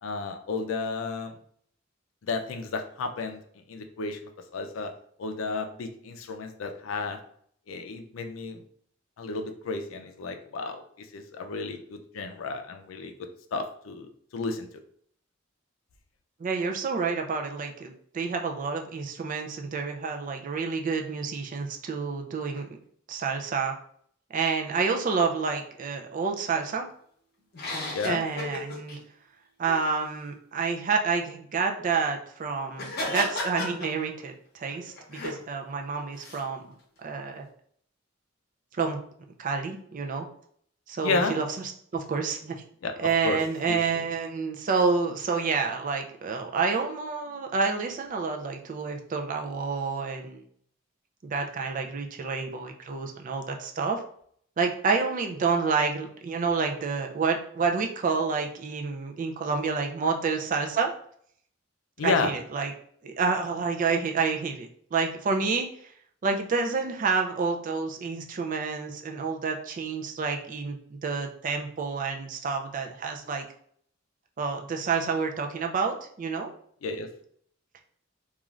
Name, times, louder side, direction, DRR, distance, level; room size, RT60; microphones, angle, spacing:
voice 1, 0.0-1.4 2.2-3.4 3.7-4.2 4.5-4.9 5.2-7.2 7.7-8.6 9.2-14.7 27.9-28.2 41.0-41.3 42.8-43.0 43.2-43.4 43.7-44.0 62.0-62.3 76.8-77.1, left 4 dB, 80° left, 5 dB, 0.4 m, -32 dB
voice 2, 16.4-22.8 23.1-23.7 24.3-26.9 28.0-29.0 29.6-36.7 37.0-37.4 38.7-39.0 39.4-40.3 40.9-41.4 41.9-42.6 43.0-50.4 51.2-54.0 54.6-60.9 62.0-62.7 63.0-65.7 66.2-73.4 74.4-76.5, right 5 dB, 40° right, 3 dB, 0.4 m, -29 dB
sound 1, 27.5-29.0 29.7-29.9 32.7-34.3 34.7-35.4 36.2-36.4, left 2 dB, 55° left, 0.8 m, -34 dB
3.1 x 2.4 x 2.4 m, 0.63 s
head